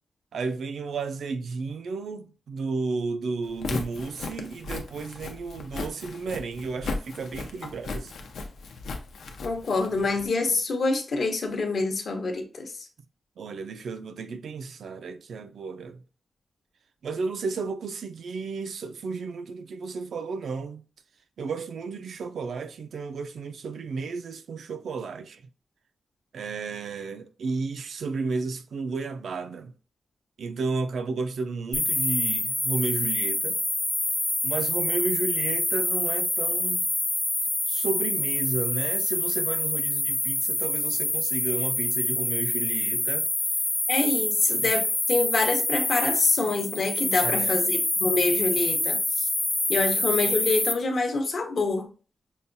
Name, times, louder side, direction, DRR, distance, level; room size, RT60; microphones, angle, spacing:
voice 1, 0.3-8.3 13.4-16.0 17.0-20.8 21.4-25.4 26.3-29.7 30.4-33.6 34.4-36.9 37.7-43.3 44.5-44.7 47.2-47.6, right 4 dB, 75° right, 0.4 m, -33 dB
Walk footsteps, 3.5-10.3, left 3 dB, 90° left, 0.5 m, -36 dB
voice 2, 9.4-12.7 43.9-49.3 49.7-51.9, left 3 dB, 60° left, 0.8 m, -26 dB
sound 1, 31.7-50.7, left 2 dB, 15° left, 0.3 m, -26 dB
5.3 x 2.2 x 2.6 m
wide cardioid pair, 125°, 0 cm